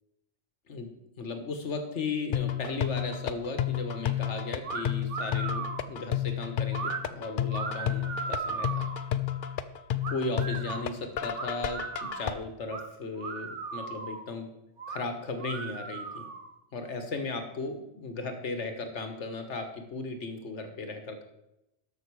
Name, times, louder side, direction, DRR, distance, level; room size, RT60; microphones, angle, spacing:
voice 1, 1.2-8.9 10.1-14.5 14.9-16.3 16.7-21.2, left 3 dB, 80° left, 6 dB, 1.6 m, -36 dB
sound 1, 2.3-12.3, left 10 dB, 60° left, 0.6 m, -31 dB
sound 2, 4.6-4.8 5.1-5.9 6.7-7.0 7.5-9.0 10.0-10.8 11.3-12.3 12.7-12.8 13.2-14.2 14.8-15.0 15.4-16.5, right 5 dB, 85° right, 1.4 m, -36 dB
12.5 x 5.9 x 4.7 m, 0.86 s
omnidirectional pair, 1.2 m